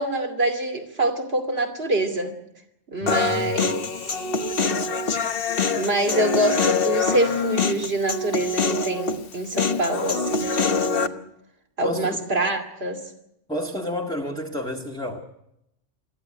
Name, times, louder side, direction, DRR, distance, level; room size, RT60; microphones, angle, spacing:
voice 1, 0.0-2.3 2.9-3.8 5.7-11.2 11.8-13.0, right 2 dB, 55° right, 5 dB, 3.0 m, -25 dB
voice 2, 3.0-3.6 11.8-12.2 13.5-15.2, equal, 5° left, 0 dB, 1.7 m, -30 dB
Human voice, 3.1-11.1, left 4 dB, 50° left, 1.2 m, -24 dB
22.5 x 14.5 x 10.0 m, 0.82 s
omnidirectional pair, 1.3 m